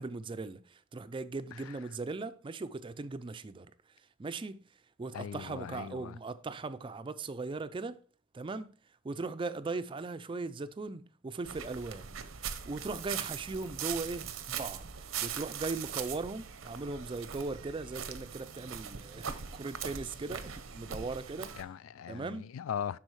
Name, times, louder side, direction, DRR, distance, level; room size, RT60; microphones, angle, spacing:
voice 1, 0.0-3.7 4.2-4.6 5.0-8.0 8.3-8.7 9.0-12.2 12.7-14.9 15.2-21.6 22.1-22.5, right 3 dB, 25° right, 0.4 m, -39 dB
voice 2, 5.1-6.2 21.6-23.0, left 8 dB, 85° left, 0.3 m, -39 dB
sound 1, 11.4-21.6, right 8 dB, 85° right, 0.7 m, -41 dB
11.5 x 4.2 x 3.1 m
head